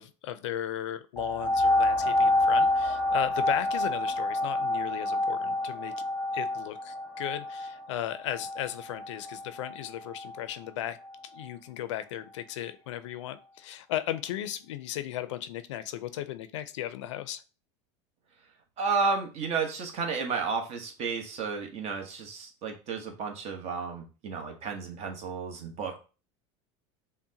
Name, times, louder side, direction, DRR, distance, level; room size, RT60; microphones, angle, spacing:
voice 1, 0.0-5.9 6.3-11.0 11.3-17.4, left 12 dB, 90° left, 12 dB, 0.5 m, -36 dB
sound 1, 1.2-10.4 11.0-11.1, left 2 dB, 10° left, 1.0 m, -28 dB
voice 2, 18.8-26.0, right 5 dB, 45° right, 4 dB, 1.0 m, -32 dB
5.7 x 2.1 x 2.8 m, 0.34 s
supercardioid pair, 125°, 15 cm